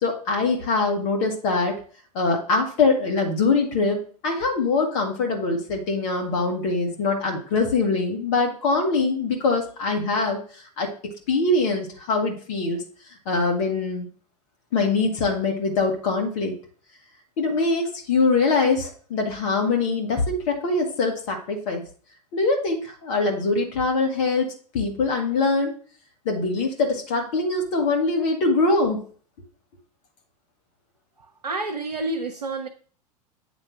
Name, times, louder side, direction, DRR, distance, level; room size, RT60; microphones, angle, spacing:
voice 1, 0.0-1.8 2.1-10.4 10.8-12.8 13.3-14.1 14.7-16.5 17.4-21.8 22.3-25.8 26.3-29.0, left 3 dB, 50° left, 2 dB, 1.9 m, -23 dB
voice 2, 31.4-32.7, right 2 dB, 80° right, 3 dB, 0.7 m, -28 dB
8.5 x 3.2 x 5.7 m, 0.42 s
figure-of-eight pair, 85°, 20 cm